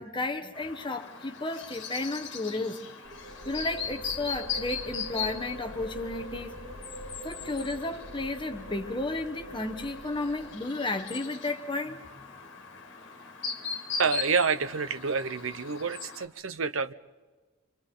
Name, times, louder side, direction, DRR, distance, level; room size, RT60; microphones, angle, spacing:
voice 1, 0.0-2.8 3.4-6.6 7.2-12.0, left 2 dB, 20° left, 1.1 m, -33 dB
Chirp tweet, 0.5-16.3, left 6 dB, 55° left, 2.1 m, -40 dB
sound 1, 3.0-10.9, right 1 dB, 25° right, 2.5 m, -44 dB
voice 2, 14.0-16.9, right 5 dB, 65° right, 0.7 m, -28 dB
26.5 x 25.5 x 3.8 m
head